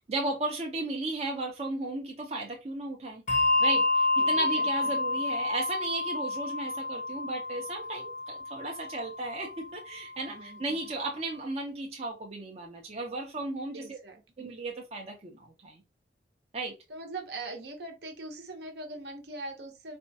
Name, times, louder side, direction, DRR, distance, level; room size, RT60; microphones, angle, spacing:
voice 1, 0.1-3.2 3.6-14.0 14.4-15.8 16.5-16.7, right 2 dB, 35° right, 0.6 m, -35 dB
Bell, 3.3-10.1, left 2 dB, 45° left, 0.7 m, -29 dB
voice 2, 4.2-4.7 10.3-10.8 13.7-14.5 16.9-20.0, right 2 dB, 65° right, 0.8 m, -42 dB
4.2 x 2.2 x 2.7 m
head